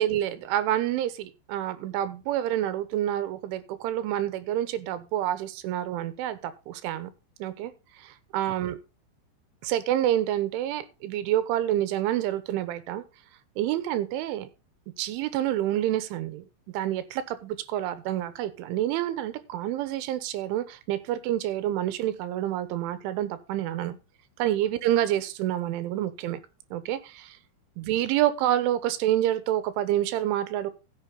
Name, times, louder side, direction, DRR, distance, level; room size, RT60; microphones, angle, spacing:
voice 1, 0.0-7.1 7.4-7.7 8.0-8.8 9.6-13.0 13.6-14.5 15.0-24.0 24.4-26.4 26.7-27.4 27.8-30.7, right 12 dB, 90° right, 3.5 m, -28 dB
14.5 x 7.6 x 4.0 m
omnidirectional pair, 5.5 m